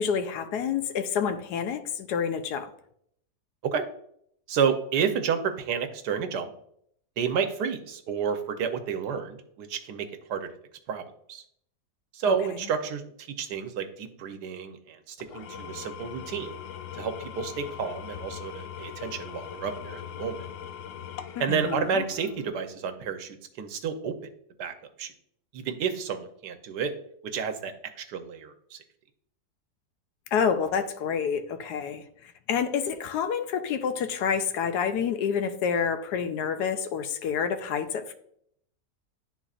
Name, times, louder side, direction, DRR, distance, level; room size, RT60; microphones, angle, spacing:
voice 1, 0.0-2.7 12.3-12.4 21.4-22.0 30.3-38.1, left 7 dB, 90° left, 1.2 m, -28 dB
voice 2, 4.5-6.5 7.2-10.5 10.9-11.4 12.1-13.0 13.4-16.5 16.9-20.4 21.4-24.2 24.6-25.1 25.5-26.9 27.2-27.7 28.1-28.8, right 6 dB, 90° right, 1.4 m, -30 dB
Engine / Tools, 15.2-22.7, left 9 dB, 70° left, 0.8 m, -41 dB
11.0 x 4.0 x 2.4 m
omnidirectional pair, 1.7 m